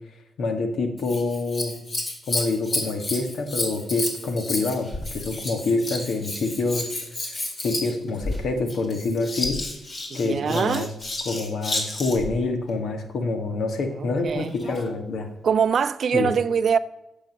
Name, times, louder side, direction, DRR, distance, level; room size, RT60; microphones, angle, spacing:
voice 1, 0.4-1.8 2.3-6.9 7.6-9.6 10.1-10.9 11.2-15.3 16.1-16.3, left 3 dB, 75° left, 1.5 m, -26 dB
Scissors, 1.0-12.3 14.3-14.9 15.6-15.7, left 2 dB, 50° left, 2.4 m, -31 dB
voice 2, 10.1-10.9 14.0-14.5 15.4-16.8, right 7 dB, 65° right, 0.4 m, -23 dB
9.1 x 6.4 x 5.3 m
cardioid pair, 60°, 0 cm